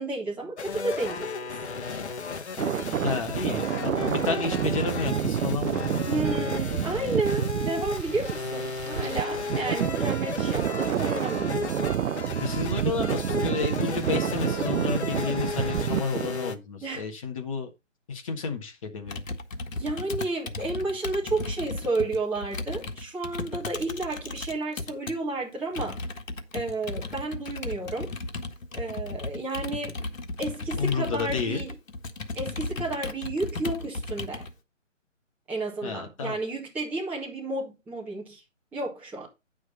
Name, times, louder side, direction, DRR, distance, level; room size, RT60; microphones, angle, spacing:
voice 1, 0.0-1.5 2.7-3.0 6.0-11.5 16.8-17.1 19.8-26.0 26.5-28.1 28.7-30.1 30.4-31.7 32.4-34.5 35.5-38.4 38.7-39.3, right 2 dB, 5° right, 2.0 m, -32 dB
sound 1, 0.6-16.6, left 4 dB, 60° left, 1.4 m, -34 dB
sound 2, 2.6-16.4, right 9 dB, 80° right, 0.6 m, -29 dB
voice 2, 3.0-6.6 12.4-17.7 18.1-19.2 30.8-31.6 35.8-36.4, left 5 dB, 25° left, 1.6 m, -31 dB
Computer keyboard, 19.1-25.2 25.7-34.5, left 2 dB, 85° left, 1.7 m, -35 dB
9.6 x 6.3 x 4.1 m
hypercardioid pair, 165°, 38 cm